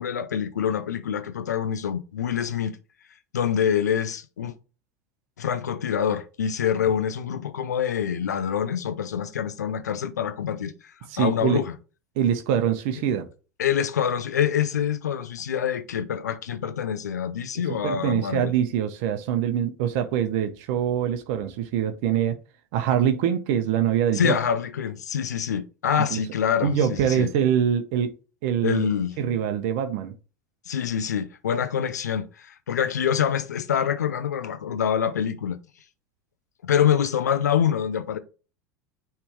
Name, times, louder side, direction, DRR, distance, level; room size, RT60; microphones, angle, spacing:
voice 1, 0.0-2.8 3.3-4.5 5.4-10.7 11.2-11.7 13.6-18.5 24.1-27.3 28.6-29.1 30.7-35.6 36.6-38.2, left 8 dB, 80° left, 0.8 m, -25 dB
voice 2, 11.0-11.6 12.2-13.3 17.7-22.4 22.7-24.4 26.0-26.2 26.6-28.2 28.4-28.9 29.2-30.1, right 9 dB, 60° right, 1.0 m, -24 dB
9.8 x 3.5 x 3.1 m
hypercardioid pair, 85°, 9 cm